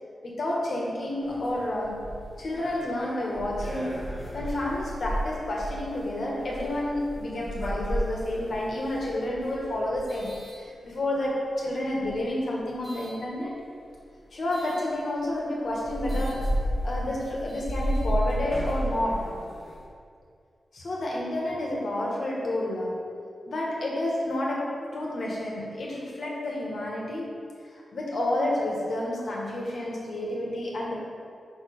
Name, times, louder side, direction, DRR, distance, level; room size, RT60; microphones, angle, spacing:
voice 1, 0.2-2.1 2.4-13.6 14.3-16.5 16.8-19.4 20.7-23.1 23.5-27.4 27.7-30.9, left 1 dB, 60° left, -3 dB, 1.6 m, -30 dB
sound 1, 1.2-11.2 11.9-13.1 14.5-14.8 15.3-15.4 15.7-19.9, equal, 30° left, 1.5 m, -33 dB
5.3 x 5.0 x 5.4 m, 2.2 s
wide cardioid pair, 95°, 0 cm